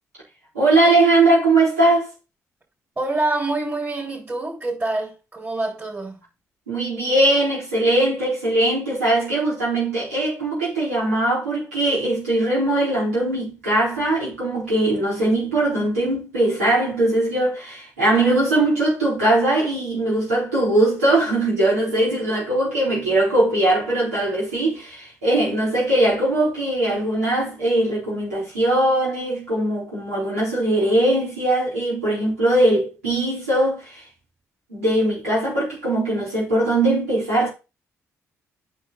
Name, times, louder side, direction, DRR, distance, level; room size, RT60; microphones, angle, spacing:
voice 1, 0.5-2.1 6.7-34.0 34.7-37.5, right 1 dB, 85° right, 4.3 m, -20 dB
voice 2, 3.0-6.2, right 2 dB, 25° right, 4.3 m, -26 dB
9.0 x 5.9 x 4.0 m
figure-of-eight pair, 40°, 8 cm